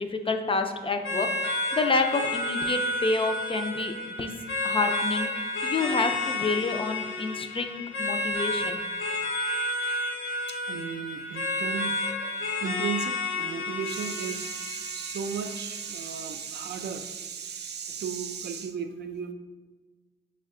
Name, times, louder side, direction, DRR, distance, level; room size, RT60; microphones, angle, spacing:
voice 1, 0.0-4.3 4.6-5.3 5.6-8.8, left 3 dB, 30° left, 5 dB, 0.4 m, -28 dB
sound 1, 1.0-16.0, left 2 dB, 90° left, 0.7 m, -31 dB
voice 2, 10.5-19.3, right 7 dB, 60° right, 6 dB, 0.4 m, -35 dB
5.4 x 2.2 x 3.6 m, 1.3 s
cardioid pair, 80°, 20 cm